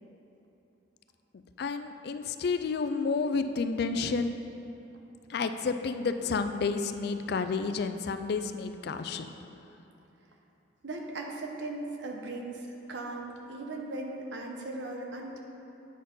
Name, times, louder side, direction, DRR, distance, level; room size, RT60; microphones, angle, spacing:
voice 1, 1.6-4.4 5.3-9.3, left 4 dB, 50° left, 9 dB, 0.3 m, -30 dB
voice 2, 10.8-15.4, right 2 dB, 65° right, 1 dB, 0.9 m, -38 dB
8.4 x 4.4 x 5.4 m, 3.0 s
head